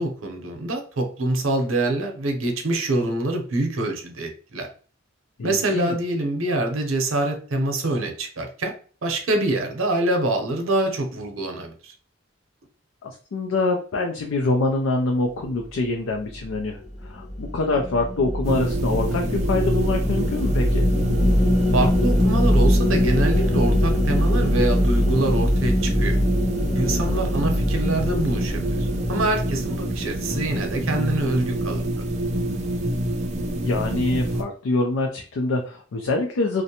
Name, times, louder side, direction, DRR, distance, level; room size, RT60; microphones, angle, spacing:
voice 1, 0.0-4.7 5.4-8.7 9.0-11.9 21.7-26.2 26.7-31.8, right 2 dB, 85° right, 3 dB, 0.7 m, -25 dB
voice 2, 5.4-6.0 13.0-20.9 27.2-27.3 33.6-36.6, left 2 dB, 85° left, 2 dB, 0.4 m, -25 dB
sound 1, 16.3-30.8, left 1 dB, ahead, 0.8 m, -23 dB
sound 2, 18.4-34.4, right 1 dB, 35° right, 0.4 m, -27 dB
2.5 x 2.1 x 2.8 m, 0.41 s
head